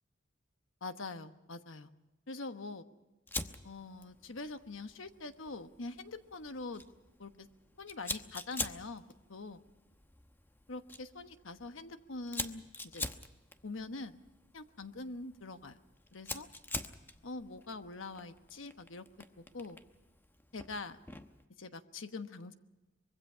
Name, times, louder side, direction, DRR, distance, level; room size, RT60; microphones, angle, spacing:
voice 1, 0.8-1.9 2.3-2.9 3.6-6.9 7.2-7.5 7.8-9.0 9.3-9.6 10.7-13.1 13.6-14.2 14.5-15.8 16.1-16.5 17.2-19.0 19.4-19.8 20.5-21.0 21.6-22.6, left 3 dB, 75° left, 9 dB, 1.2 m, -44 dB
Fire, 3.3-21.4, left 2 dB, 10° left, 0.9 m, -46 dB
24.5 x 22.5 x 5.6 m, 1.1 s
head